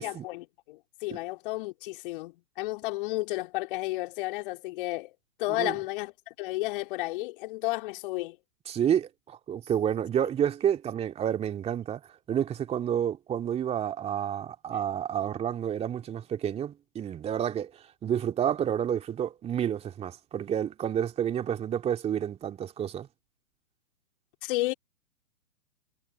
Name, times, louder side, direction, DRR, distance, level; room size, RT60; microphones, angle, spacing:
voice 1, 0.0-5.1 5.4-8.4 24.4-24.7, left 20 dB, 35° left, 4.2 m, -32 dB
voice 2, 8.7-12.0 12.3-23.1, right 9 dB, 15° right, 2.5 m, -29 dB
figure-of-eight pair, 125°, 47 cm